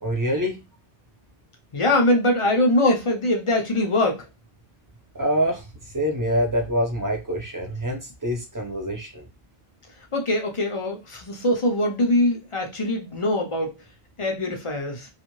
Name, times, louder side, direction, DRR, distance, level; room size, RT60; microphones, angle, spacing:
voice 1, 0.0-0.6 5.2-5.6 5.9-9.2, equal, 20° right, 0.6 m, -25 dB
voice 2, 1.7-4.2 10.1-13.7 14.2-15.1, left 1 dB, 35° left, 0.6 m, -22 dB
2.5 x 2.4 x 3.0 m
omnidirectional pair, 1.1 m